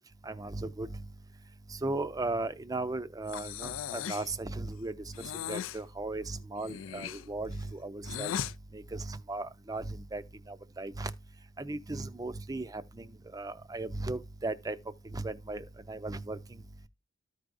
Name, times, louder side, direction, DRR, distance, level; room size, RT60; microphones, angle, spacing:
voice 1, 0.3-0.9 1.8-4.9 5.5-8.3 8.7-10.2 10.5-11.1 11.6-13.1 13.3-14.8 15.1-16.4, right 2 dB, 20° right, 0.5 m, -36 dB
Breathing, 3.3-4.3 5.1-5.8 6.6-8.5, left 9 dB, 80° left, 0.4 m, -38 dB
14.0 x 4.7 x 2.5 m
head